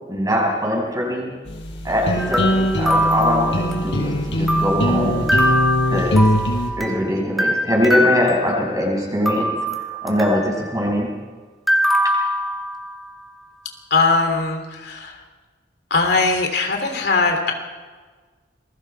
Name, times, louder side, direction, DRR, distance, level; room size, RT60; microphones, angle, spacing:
voice 1, 0.1-1.3 1.8-5.3 5.8-6.2 6.8-11.1, equal, 20° right, -1 dB, 6.0 m, -22 dB
sound 1, 1.5-6.7, equal, 75° left, 5.0 m, -21 dB
sound 2, 2.2-4.1 4.5-7.0 7.4-8.9 9.3-10.6 11.7-13.1, equal, ahead, 2.4 m, -23 dB
voice 2, 13.9-15.2 15.9-17.5, left 3 dB, 60° left, 4 dB, 2.8 m, -20 dB
27.5 x 22.0 x 4.5 m, 1.4 s
head